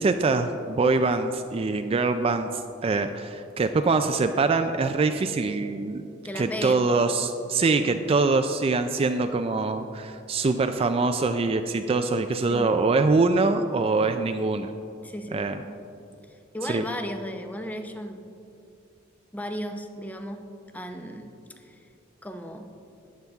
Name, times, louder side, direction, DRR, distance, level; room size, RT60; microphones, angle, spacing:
voice 1, 0.0-2.5 2.8-6.0 6.4-14.7 15.3-15.6 16.6-16.8, right 3 dB, 30° right, 7 dB, 0.3 m, -24 dB
voice 2, 6.2-6.8 12.5-12.7 15.0-15.7 16.3-18.3 19.3-20.4 20.7-21.3 21.6-21.8 22.2-22.7, equal, 10° left, 6 dB, 0.6 m, -35 dB
14.0 x 9.4 x 3.5 m, 2.7 s
head